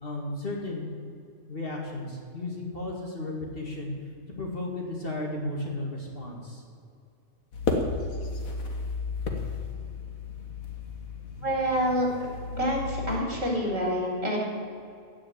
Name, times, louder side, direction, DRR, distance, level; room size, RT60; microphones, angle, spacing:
voice 1, 0.0-0.9 1.5-3.9 4.4-6.6, left 2 dB, 45° left, 0 dB, 2.3 m, -34 dB
sound 1, 7.5-13.2, left 3 dB, 90° left, 2.0 m, -33 dB
voice 2, 11.4-12.1 12.5-14.4, equal, 50° right, -2 dB, 4.0 m, -27 dB
16.0 x 6.3 x 9.2 m, 2.4 s
omnidirectional pair, 1.4 m